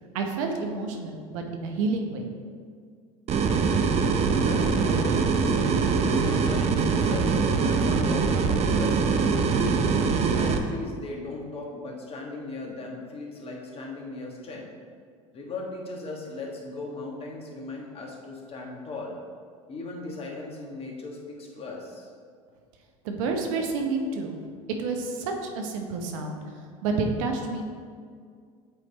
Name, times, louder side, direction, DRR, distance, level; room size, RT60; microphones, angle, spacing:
voice 1, 0.1-2.3 23.0-24.4 24.8-26.4 26.8-27.6, right 3 dB, 75° right, 3 dB, 0.9 m, -29 dB
sound 1, 3.3-10.6, right 5 dB, 40° right, 0.6 m, -23 dB
voice 2, 4.3-9.0 9.5-9.9 10.3-14.7 15.3-19.1 19.7-22.1, left 2 dB, 35° left, -1 dB, 1.4 m, -38 dB
8.2 x 3.3 x 4.0 m, 2.1 s
hypercardioid pair, 85°, 17 cm